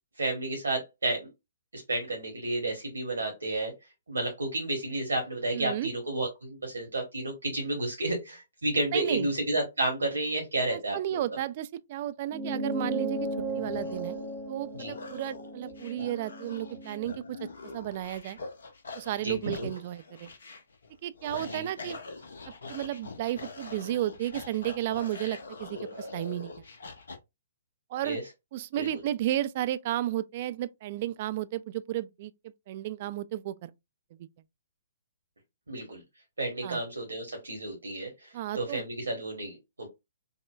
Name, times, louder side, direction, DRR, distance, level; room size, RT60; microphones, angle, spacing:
voice 1, 0.2-1.3 1.7-3.7 4.1-11.2 14.8-14.9 19.2-19.7 21.4-21.7 28.0-28.2 28.8-28.9 35.7-36.0 36.4-39.9, right 2 dB, 75° right, 1.1 m, -31 dB
voice 2, 5.5-5.9 8.9-9.3 10.7-13.3 13.5-14.2 14.5-17.5 17.7-18.4 18.9-20.3 21.0-22.0 22.5-26.5 27.9-28.2 28.5-33.7 36.6-36.8 38.3-38.8, right 13 dB, 40° right, 0.3 m, -33 dB
sound 1, 12.3-17.1, right 1 dB, 10° right, 0.7 m, -35 dB
sound 2, 12.8-27.2, left 3 dB, 65° left, 0.8 m, -44 dB
5.3 x 2.1 x 2.3 m
figure-of-eight pair, 125°, 0 cm